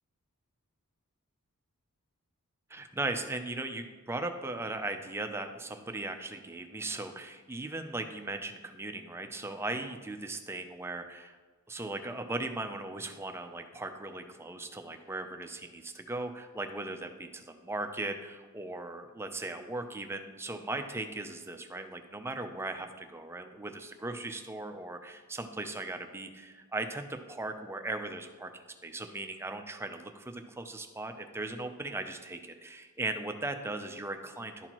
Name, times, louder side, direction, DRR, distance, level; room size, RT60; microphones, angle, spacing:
voice 1, 2.7-11.4 11.7-28.5 28.8-34.7, right 2 dB, 10° right, 6 dB, 0.5 m, -38 dB
11.5 x 4.3 x 2.9 m, 1.4 s
head